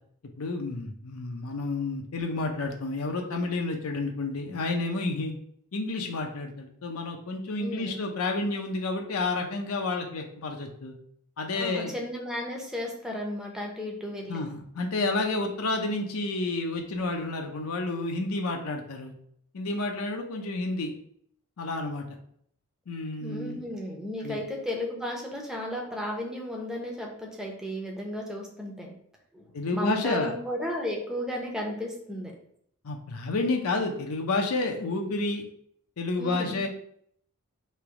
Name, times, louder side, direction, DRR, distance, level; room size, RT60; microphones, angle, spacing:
voice 1, 0.4-5.3 5.7-10.9 11.4-11.9 14.3-19.1 19.5-20.9 21.6-22.1 22.9-23.6 24.2-24.4 29.5-30.3 32.8-35.4 36.0-36.7, left 2 dB, 80° left, 2 dB, 0.6 m, -30 dB
voice 2, 7.6-8.0 11.6-14.4 23.2-28.9 29.3-29.4 29.7-32.3 36.2-36.6, left 1 dB, 5° right, -1 dB, 0.7 m, -34 dB
3.2 x 3.0 x 4.7 m, 0.66 s
head